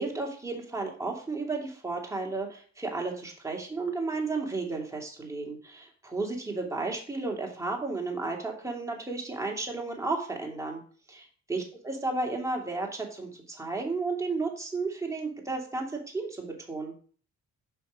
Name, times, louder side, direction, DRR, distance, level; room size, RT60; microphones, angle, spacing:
voice 1, 0.0-10.8 11.1-16.9, right 3 dB, 10° right, 0 dB, 2.6 m, -33 dB
5.8 x 5.8 x 5.1 m, 0.43 s
cardioid pair, 90°, 30 cm